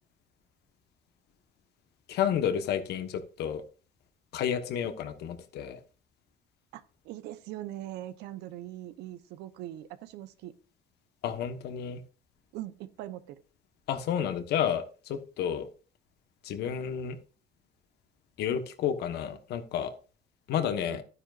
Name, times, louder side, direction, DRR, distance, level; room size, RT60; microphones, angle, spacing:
voice 1, 2.1-3.6 4.3-5.8 11.2-12.0 13.9-15.7 16.4-17.2 18.4-19.9 20.5-21.0, left 9 dB, 75° left, 9 dB, 1.3 m, -31 dB
voice 2, 6.7-10.5 12.5-13.4 20.9-21.0, right 14 dB, 85° right, 13 dB, 0.9 m, -41 dB
12.0 x 9.9 x 2.5 m, 0.37 s
cardioid pair, 110°, 17 cm